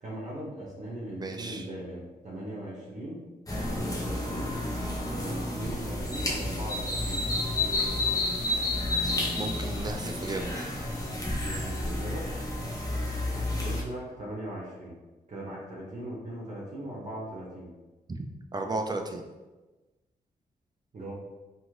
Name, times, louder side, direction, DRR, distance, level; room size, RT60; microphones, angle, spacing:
voice 1, 0.0-3.2 3.7-4.6 5.1-7.3 11.4-12.3 13.3-14.9 15.3-17.7 20.9-21.1, right 1 dB, 45° right, -6 dB, 0.8 m, -39 dB
voice 2, 1.2-1.7 9.4-10.5 18.5-19.2, right 2 dB, 25° right, 4 dB, 0.4 m, -33 dB
sound 1, 3.5-13.8, left 2 dB, 20° left, 0.7 m, -30 dB
2.6 x 2.5 x 3.1 m, 1.2 s
cardioid pair, 65°, 16 cm